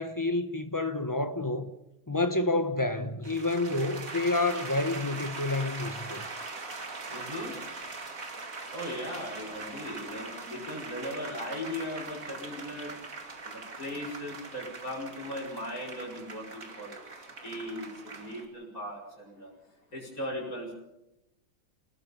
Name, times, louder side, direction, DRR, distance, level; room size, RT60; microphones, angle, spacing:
voice 1, 0.0-1.7 2.1-6.3, left 2 dB, 15° left, 0.6 m, -29 dB
sound 1, 3.2-18.4, right 3 dB, 40° right, 2.5 m, -41 dB
voice 2, 7.1-7.6 8.7-12.9 13.4-17.0 17.4-19.5 19.9-20.7, left 1 dB, 40° left, 6.6 m, -38 dB
29.0 x 19.0 x 5.4 m
omnidirectional pair, 2.3 m